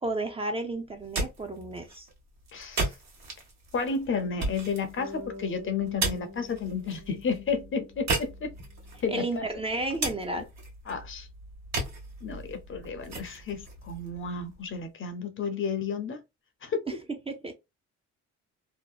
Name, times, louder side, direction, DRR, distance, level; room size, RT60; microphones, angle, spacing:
voice 1, 0.0-2.1 9.1-10.5 16.9-17.0 17.3-17.5, right 2 dB, 20° right, 0.5 m, -32 dB
sound 1, 0.9-14.8, right 3 dB, 60° right, 1.2 m, -37 dB
voice 2, 2.5-2.9 3.7-8.5 9.0-9.5 10.9-11.3 12.2-16.2 16.6-16.8, left 5 dB, 40° left, 0.6 m, -32 dB
Bass guitar, 5.0-9.1, left 2 dB, 40° right, 1.3 m, -46 dB
2.7 x 2.1 x 2.3 m
cardioid pair, 90°, 30 cm